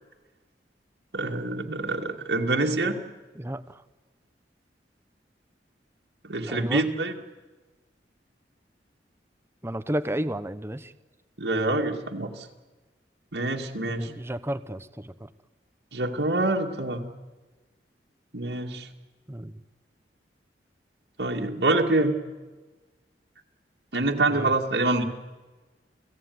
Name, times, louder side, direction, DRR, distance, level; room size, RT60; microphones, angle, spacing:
voice 1, 1.1-3.0 6.2-7.1 11.4-12.5 13.3-14.1 15.9-17.0 18.3-18.9 21.2-22.1 23.9-25.0, right 2 dB, 75° right, 0 dB, 2.2 m, -26 dB
voice 2, 3.3-3.8 6.5-6.9 9.6-10.9 14.0-15.3 19.3-19.6 24.3-24.5, right 1 dB, 15° right, 12 dB, 0.9 m, -32 dB
29.5 x 17.5 x 9.5 m, 1.3 s
head